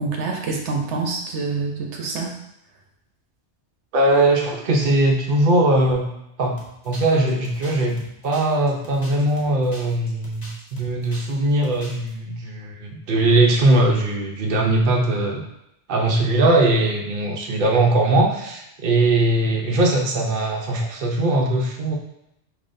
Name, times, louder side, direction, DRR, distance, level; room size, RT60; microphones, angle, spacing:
voice 1, 0.0-2.3, right 4 dB, 75° right, 1 dB, 1.0 m, -26 dB
voice 2, 3.9-6.1 6.4-6.6 6.8-15.4 15.9-22.0, right 2 dB, 50° right, 0 dB, 0.8 m, -20 dB
sound 1, 6.6-11.3 11.6-12.1, left 1 dB, 40° left, 0.9 m, -43 dB
5.1 x 3.8 x 2.6 m, 0.82 s
omnidirectional pair, 1.2 m